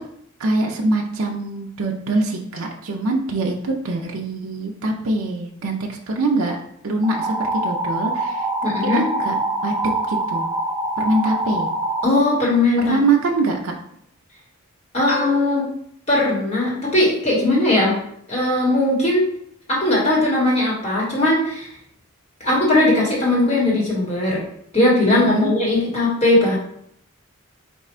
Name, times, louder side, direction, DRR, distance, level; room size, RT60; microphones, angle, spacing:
voice 1, 0.4-6.6 6.8-9.7 10.1-10.5 11.0-11.7 12.8-13.7 25.1-25.5, right 2 dB, 70° right, 1 dB, 0.5 m, -23 dB
sound 1, 7.0-12.0, right 2 dB, 15° right, 0.4 m, -24 dB
voice 2, 8.6-9.0 12.0-13.0 14.9-15.7 16.1-18.0 18.3-19.3 19.7-21.7 22.4-24.4 24.7-26.6, left 2 dB, 30° left, -5 dB, 1.3 m, -19 dB
4.4 x 2.4 x 4.3 m, 0.70 s
head